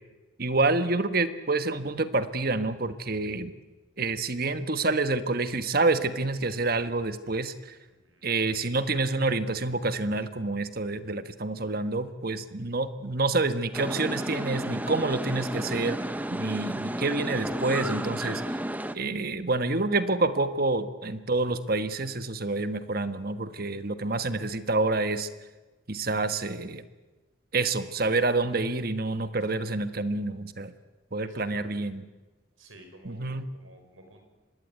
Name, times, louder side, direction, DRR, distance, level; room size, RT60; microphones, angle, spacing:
voice 1, 0.4-3.5 4.0-7.7 8.2-16.0 16.3-18.6 18.9-25.3 25.9-26.8 27.5-30.7 31.1-32.0 33.0-33.5, right 3 dB, 50° right, 11 dB, 1.4 m, -28 dB
voice 2, 7.9-8.4 31.2-31.9 32.6-34.2, right 1 dB, 90° right, 5 dB, 6.0 m, -52 dB
sound 1, 13.7-19.0, right 1 dB, 10° right, 0.9 m, -32 dB
25.0 x 20.0 x 9.5 m, 1.2 s
head